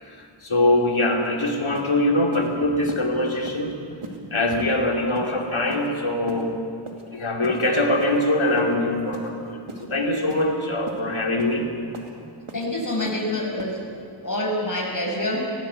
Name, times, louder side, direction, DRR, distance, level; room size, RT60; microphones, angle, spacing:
voice 1, 0.4-3.8 4.3-6.6 7.1-11.7, left 1 dB, 70° left, 1 dB, 2.9 m, -23 dB
sound 1, 1.2-1.3 1.7-1.9 2.3-2.5 2.9-3.0 3.5-3.6 4.0-4.2 4.6-4.8 5.1-5.3 5.7-5.9 6.3-6.4 6.9-7.0 7.4-7.6 8.0-8.2 8.6-8.7 9.1-9.3 9.7-9.9 10.3-10.4 10.9-11.0 11.4-11.5 11.9-12.1 12.5-12.7 13.0-13.2 13.6-13.7, right 3 dB, 75° right, 2.5 m, -38 dB
voice 2, 12.5-13.8 14.2-15.5, left 1 dB, 40° left, -2 dB, 6.1 m, -26 dB
18.5 x 17.5 x 8.3 m, 2.4 s
wide cardioid pair, 55°, 50 cm